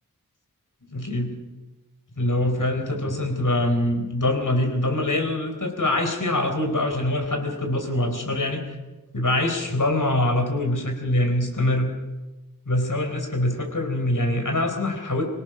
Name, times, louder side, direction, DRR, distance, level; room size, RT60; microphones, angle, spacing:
voice 1, 0.9-1.3 2.2-8.6 9.1-11.9 12.7-15.2, left 1 dB, 60° left, 4 dB, 4.3 m, -24 dB
25.5 x 17.5 x 6.3 m, 1.1 s
wide cardioid pair, 70°, 35 cm